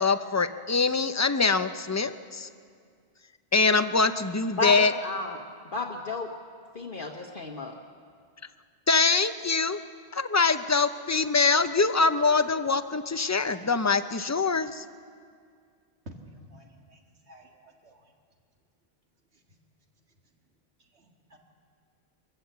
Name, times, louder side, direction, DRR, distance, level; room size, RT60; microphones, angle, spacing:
voice 1, 0.0-2.5 3.5-4.9 8.9-9.8 10.1-14.8, left 4 dB, 20° left, 10 dB, 0.5 m, -24 dB
voice 2, 4.6-5.4 5.7-6.3 6.7-7.7, left 4 dB, 55° left, 0 dB, 1.3 m, -32 dB
voice 3, 16.1-17.0 17.3-18.0 20.9-21.1 21.3-21.4, equal, 90° right, 2 dB, 2.1 m, -52 dB
23.5 x 15.0 x 8.0 m, 2.1 s
omnidirectional pair, 1.1 m